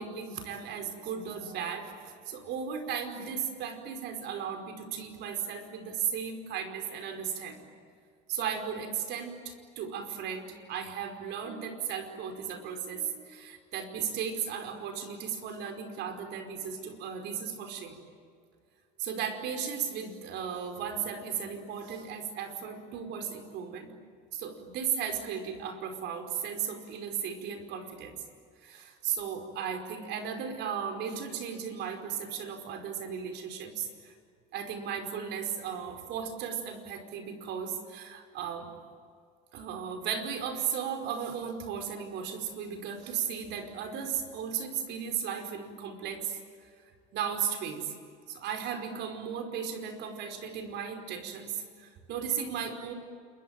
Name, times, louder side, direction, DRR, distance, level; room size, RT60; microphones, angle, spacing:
voice 1, 0.0-7.6 8.3-18.0 19.0-23.9 24.3-28.1 28.6-34.1 34.5-38.7 39.5-46.4 47.1-47.9 48.3-52.9, right 7 dB, 60° right, 6 dB, 5.0 m, -36 dB
28.0 x 23.5 x 9.1 m, 2.2 s
supercardioid pair, 120°, 20 cm